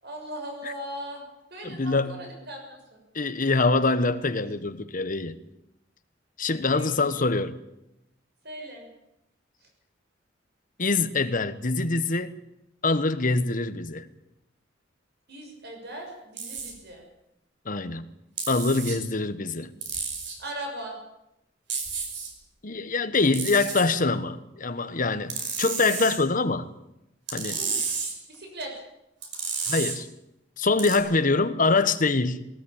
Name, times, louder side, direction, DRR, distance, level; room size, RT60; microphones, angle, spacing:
voice 1, 0.0-1.2 1.5-3.0 6.6-7.1 8.4-8.9 15.3-17.0 20.4-21.0 27.5-27.8 28.3-28.7, right 1 dB, 60° right, 6.6 m, -39 dB
voice 2, 1.6-2.2 3.1-5.4 6.4-7.6 10.8-12.4 12.8-14.1 17.6-18.0 18.5-19.7 22.6-26.7 27.3-27.6 29.7-30.1 30.6-32.4, left 3 dB, 45° left, 1.3 m, -24 dB
sound 1, 16.4-16.7 18.4-19.0 19.8-20.4 21.7-22.3 23.3-23.9 25.3-26.2 27.3-28.1 29.2-30.0 30.8-31.0, right 5 dB, 75° right, 5.1 m, -31 dB
19.5 x 19.0 x 8.9 m
head